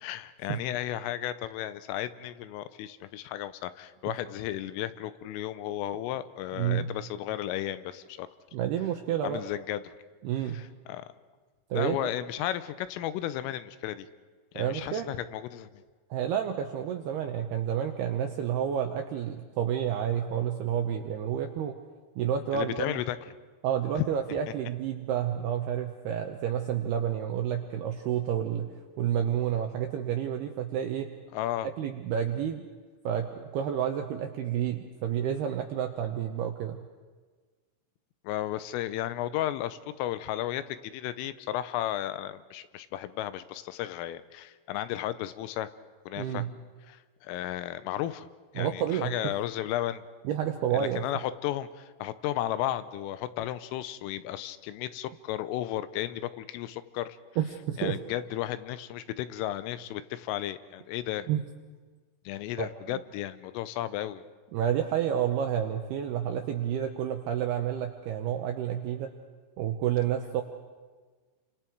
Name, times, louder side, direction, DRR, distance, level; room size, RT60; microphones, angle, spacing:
voice 1, 0.0-8.3 9.2-9.9 10.5-11.1 11.7-14.1 14.5-15.8 22.5-23.2 24.0-24.1 31.3-31.7 38.2-45.7 46.1-46.5 46.9-48.3 48.5-50.0 50.7-57.2 57.8-61.3 62.3-64.2, left 13 dB, 85° left, 13 dB, 3.4 m, -34 dB
voice 2, 6.5-6.9 8.5-9.4 10.2-10.6 11.7-12.0 14.6-15.1 16.1-21.7 22.2-23.0 23.6-28.7 29.0-31.1 31.8-32.6 33.0-36.8 46.2-46.5 48.6-49.1 50.3-51.0 57.4-58.0 61.3-61.4 62.6-63.0 64.5-69.1 69.6-70.4, right 9 dB, 75° right, 5 dB, 2.4 m, -30 dB
30.0 x 25.5 x 4.6 m, 1.4 s
omnidirectional pair, 5.8 m